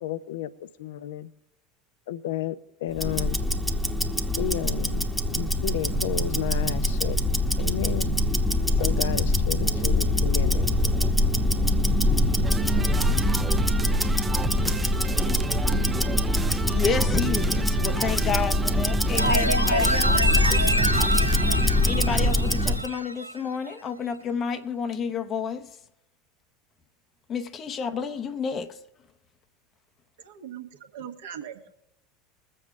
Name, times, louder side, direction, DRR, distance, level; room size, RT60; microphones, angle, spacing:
voice 1, 0.0-1.3 2.1-3.4 4.4-5.0 5.3-7.2 7.6-8.1 8.8-11.0, left 12 dB, 60° left, 0.6 m, -32 dB
Tick-tock, 2.9-22.9, left 1 dB, ahead, 1.1 m, -24 dB
sound 1, 12.4-21.9, right 3 dB, 15° right, 0.5 m, -34 dB
voice 2, 16.3-20.4 21.9-25.8 27.3-28.8, left 6 dB, 30° left, 0.8 m, -30 dB
sound 2, 19.2-23.4 23.7-23.8, right 1 dB, 90° right, 0.3 m, -27 dB
voice 3, 30.2-31.7, right 9 dB, 65° right, 1.3 m, -40 dB
22.0 x 7.7 x 3.7 m
figure-of-eight pair, 75°, 0 cm